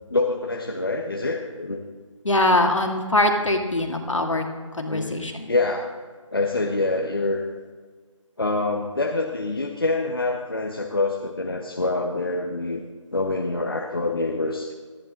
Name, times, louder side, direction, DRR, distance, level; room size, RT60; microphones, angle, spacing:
voice 1, 0.1-1.8 4.9-5.9 6.3-7.4 8.4-12.8 13.1-14.7, left 2 dB, 45° left, 1 dB, 1.2 m, -26 dB
voice 2, 2.2-4.4 4.7-5.5, left 1 dB, 70° left, 3 dB, 2.6 m, -22 dB
19.0 x 14.0 x 3.8 m, 1.5 s
figure-of-eight pair, 180°, 17 cm